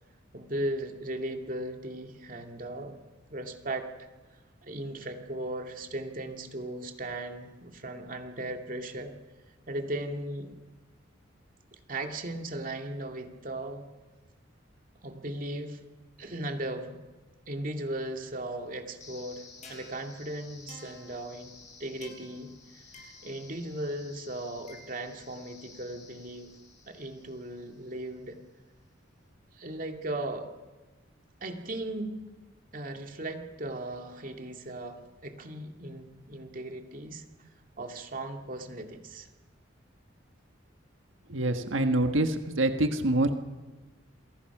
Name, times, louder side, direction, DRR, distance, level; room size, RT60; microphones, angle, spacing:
voice 1, 0.3-3.0 3.3-3.9 4.6-9.1 9.7-10.5 11.9-13.8 15.0-15.8 16.2-16.9 17.5-21.5 21.8-22.5 22.7-26.5 26.9-28.4 29.5-30.5 31.4-32.2 32.7-37.2 37.8-39.3, right 1 dB, 45° right, 4 dB, 2.5 m, -37 dB
sound 1, 19.0-28.0, left 3 dB, 35° left, 6.5 m, -52 dB
voice 2, 41.3-43.4, right 1 dB, 85° right, 7 dB, 1.6 m, -26 dB
28.0 x 22.5 x 6.1 m, 1.2 s
head